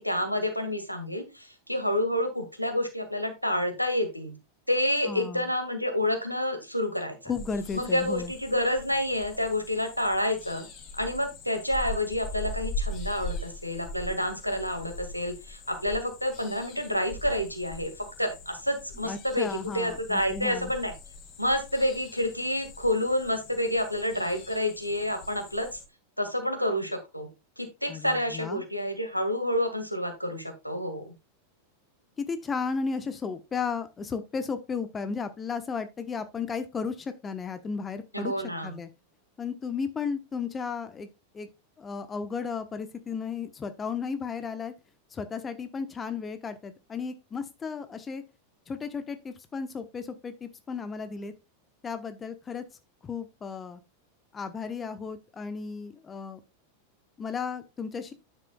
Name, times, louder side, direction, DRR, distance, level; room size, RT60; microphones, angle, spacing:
voice 1, 0.0-4.3 4.7-7.2 7.7-10.6 11.0-17.9 18.2-19.5 19.7-20.9 21.4-25.8 26.2-27.3 27.6-31.1 38.1-38.7, left 1 dB, 90° left, 6 dB, 1.9 m, -29 dB
voice 2, 5.1-5.5 7.3-8.3 19.0-20.7 27.9-28.6 32.2-38.3 38.6-38.9 39.4-41.1 41.3-41.5 41.8-44.7 45.1-48.2 48.7-51.3 51.8-52.6 53.0-53.8 54.3-56.4 57.2-58.1, left 5 dB, 20° left, 11 dB, 0.9 m, -34 dB
sound 1, 7.3-25.9, left 2 dB, 40° left, 1.9 m, -41 dB
9.6 x 7.7 x 2.3 m, 0.26 s
figure-of-eight pair, 90°, 0 cm